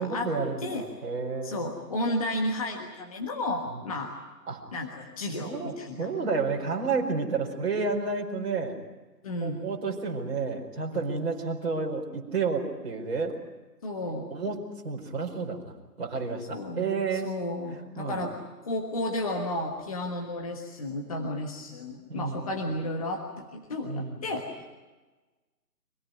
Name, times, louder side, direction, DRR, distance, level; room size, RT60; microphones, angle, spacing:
voice 1, 0.0-1.7 3.7-3.9 4.5-4.6 5.4-8.8 9.4-13.3 14.0-17.3 17.7-18.3 22.1-22.5 23.8-24.2, right 4 dB, 40° right, -1 dB, 4.7 m, -31 dB
voice 2, 1.4-4.1 4.7-6.1 9.2-9.6 13.8-14.3 16.5-18.3 18.6-24.5, left 1 dB, 20° left, 1 dB, 1.4 m, -33 dB
26.0 x 17.5 x 9.4 m, 1.2 s
figure-of-eight pair, 165°, 48 cm